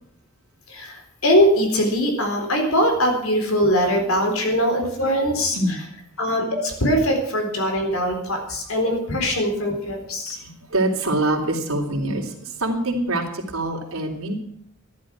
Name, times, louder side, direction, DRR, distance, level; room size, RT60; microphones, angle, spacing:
voice 1, 0.7-5.6 6.2-10.4, equal, 85° left, 4 dB, 4.0 m, -21 dB
voice 2, 4.2-4.9 5.3-5.8 10.3-14.3, right 1 dB, 90° right, 0 dB, 3.3 m, -25 dB
14.0 x 11.5 x 6.2 m, 0.69 s
head